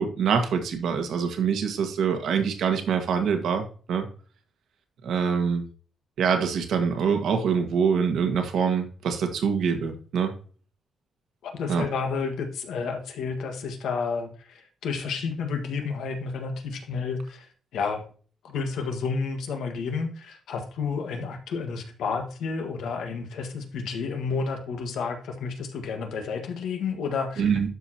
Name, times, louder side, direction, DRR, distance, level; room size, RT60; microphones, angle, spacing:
voice 1, 0.0-4.1 5.0-5.6 6.2-10.3 11.7-11.8 27.4-27.7, right 6 dB, 75° right, 6 dB, 1.6 m, -25 dB
voice 2, 11.4-18.0 18.4-27.7, left 5 dB, 85° left, 4 dB, 1.6 m, -31 dB
12.0 x 5.0 x 2.9 m, 0.40 s
cardioid pair, 115°, 0 cm